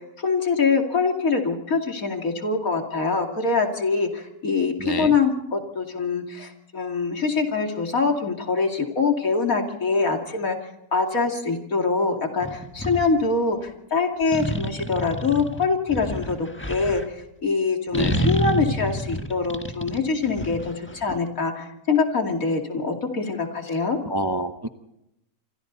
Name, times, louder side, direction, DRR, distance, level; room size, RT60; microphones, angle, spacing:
voice 1, 0.0-10.6 10.9-24.0, left 4 dB, 65° left, 3 dB, 3.0 m, -24 dB
voice 2, 4.8-5.1 17.9-18.3 24.1-24.7, right 1 dB, 20° right, 7 dB, 0.8 m, -27 dB
sound 1, 12.4-13.1 14.3-17.0 17.9-21.2, equal, 10° left, 1.3 m, -28 dB
27.0 x 25.0 x 4.0 m, 0.86 s
omnidirectional pair, 1.6 m